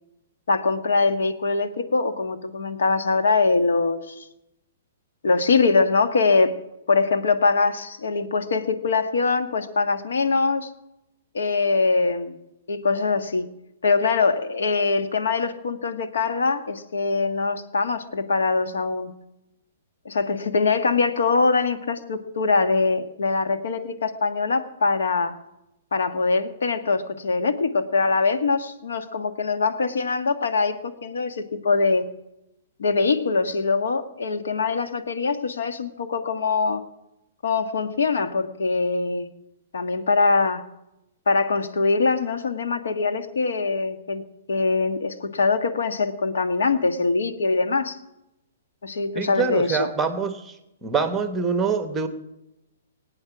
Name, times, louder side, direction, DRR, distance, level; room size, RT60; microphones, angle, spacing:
voice 1, 0.5-4.2 5.2-6.5 6.9-10.7 11.3-12.4 12.7-13.5 13.8-19.1 20.0-25.4 25.9-32.1 32.8-36.8 37.4-39.3 39.7-40.6 41.3-44.2 44.5-48.0 48.8-49.9, left 4 dB, 90° left, 8 dB, 1.6 m, -23 dB
voice 2, 49.2-50.5 50.8-52.1, right 5 dB, 10° right, 9 dB, 1.0 m, -25 dB
23.5 x 8.7 x 6.0 m, 0.90 s
hypercardioid pair, 165°, 0 cm